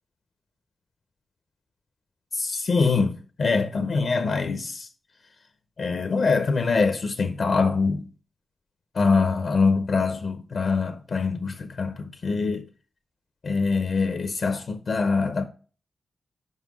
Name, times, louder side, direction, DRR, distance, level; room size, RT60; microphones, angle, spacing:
voice 1, 2.3-4.9 5.8-8.1 8.9-12.7 13.4-15.4, left 4 dB, 60° left, 0.7 m, -24 dB
5.6 x 5.2 x 6.2 m
wide cardioid pair, 110°, 0 cm